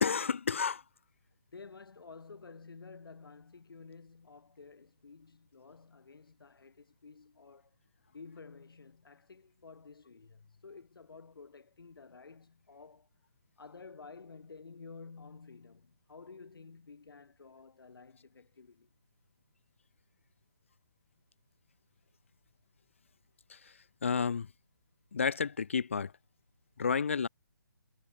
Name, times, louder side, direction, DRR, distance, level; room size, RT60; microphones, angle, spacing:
voice 1, 0.0-0.8 24.0-24.5 25.1-26.1 26.8-27.3, left 6 dB, 35° left, 0.3 m, -30 dB
voice 2, 1.5-7.7 8.1-13.1 13.6-18.9, left 4 dB, 75° left, 2.4 m, -52 dB
hypercardioid pair, 175°, 12 cm